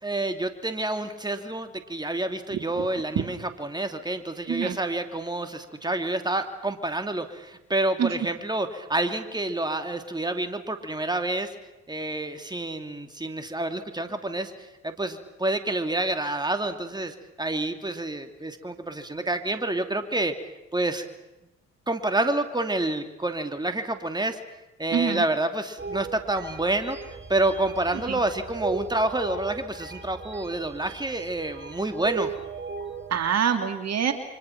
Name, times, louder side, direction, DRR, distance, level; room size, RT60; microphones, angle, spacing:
voice 1, 0.0-11.5 11.9-20.3 20.7-21.0 21.9-24.4 24.8-32.3, right 2 dB, 15° right, 7 dB, 2.9 m, -28 dB
voice 2, 24.9-25.2 28.1-28.2 33.1-34.1, right 8 dB, 60° right, 7 dB, 2.7 m, -25 dB
sound 1, 25.8-33.3, right 4 dB, 40° right, 5.6 m, -37 dB
29.0 x 25.0 x 6.0 m, 0.95 s
hypercardioid pair, 50°, 30 cm